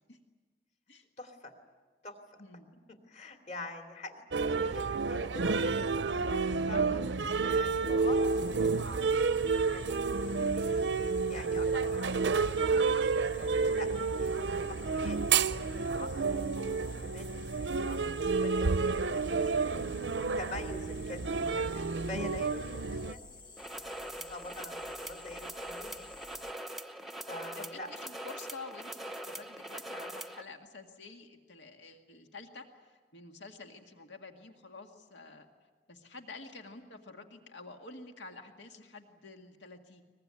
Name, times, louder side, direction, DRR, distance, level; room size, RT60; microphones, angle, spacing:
voice 1, 1.2-1.5 2.0-2.4 2.9-12.9 13.4-23.2 23.8-26.4 27.3-27.9, left 2 dB, 40° left, 5 dB, 2.9 m, -47 dB
sound 1, 4.3-23.1, right 4 dB, 90° right, 0.7 m, -30 dB
voice 2, 6.7-7.1 27.6-35.5 35.9-40.0, left 3 dB, 90° left, 4 dB, 2.0 m, -49 dB
sound 2, 8.1-26.5, left 3 dB, 25° left, 1.2 m, -52 dB
sound 3, 23.6-30.4, right 1 dB, ahead, 0.8 m, -42 dB
23.0 x 21.5 x 9.7 m, 1.4 s
head